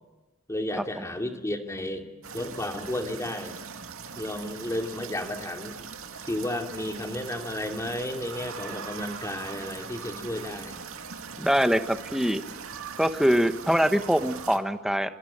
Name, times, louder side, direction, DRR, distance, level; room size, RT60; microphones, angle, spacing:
voice 1, 0.5-3.6 4.2-5.9 6.2-10.8, left 1 dB, 15° left, 4 dB, 2.6 m, -33 dB
sound 1, 2.2-14.6, right 6 dB, 75° right, 2.3 m, -41 dB
voice 2, 11.4-12.4 13.0-15.1, equal, ahead, 9 dB, 1.2 m, -23 dB
26.5 x 25.0 x 8.7 m, 1.2 s
head